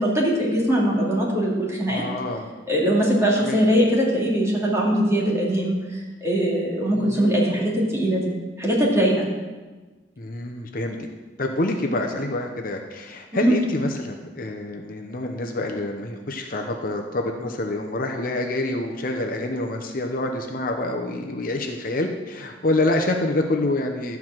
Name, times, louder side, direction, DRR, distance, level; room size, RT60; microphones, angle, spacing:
voice 1, 0.0-2.0 2.7-8.3 8.6-9.3 13.3-13.6, equal, 15° right, -4 dB, 2.3 m, -21 dB
voice 2, 1.9-2.4 3.4-3.6 6.9-7.5 10.2-11.0 11.4-24.2, left 2 dB, 50° left, 3 dB, 0.8 m, -27 dB
12.5 x 4.7 x 7.4 m, 1.3 s
head